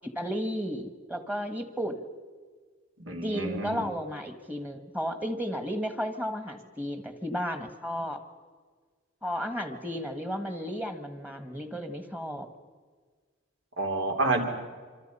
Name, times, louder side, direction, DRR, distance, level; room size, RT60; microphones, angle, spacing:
voice 1, 0.0-2.0 3.2-8.2 9.2-12.5, equal, 10° right, 8 dB, 1.5 m, -33 dB
voice 2, 3.0-3.8 13.8-14.5, right 2 dB, 75° right, 3 dB, 3.8 m, -29 dB
26.0 x 26.0 x 5.6 m, 1.5 s
head